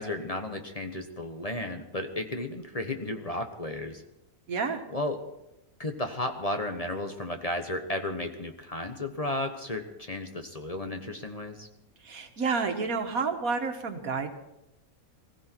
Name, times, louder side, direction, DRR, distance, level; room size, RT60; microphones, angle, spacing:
voice 1, 0.0-4.0 4.9-5.2 5.8-11.7, left 1 dB, 25° left, 5 dB, 1.2 m, -33 dB
voice 2, 4.5-4.8 12.0-14.3, right 4 dB, 75° right, 6 dB, 1.9 m, -30 dB
20.5 x 15.5 x 4.6 m, 0.88 s
omnidirectional pair, 1.5 m